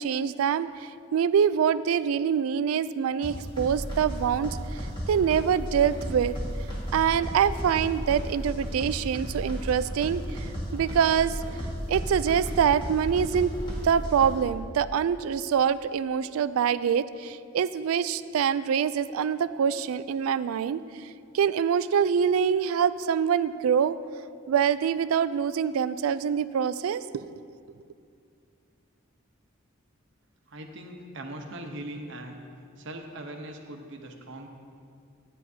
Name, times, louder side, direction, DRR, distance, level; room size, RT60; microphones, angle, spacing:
voice 1, 0.0-4.8 5.1-6.4 6.9-10.5 10.7-11.4 11.9-13.5 13.8-20.8 21.3-24.0 24.5-27.4, right 7 dB, 85° right, 15 dB, 0.3 m, -25 dB
sound 1, 3.2-14.4, equal, 20° left, 1.8 m, -34 dB
voice 2, 30.5-32.4 32.8-34.5, right 1 dB, 60° right, 3 dB, 0.9 m, -40 dB
13.0 x 9.7 x 2.8 m, 2.3 s
head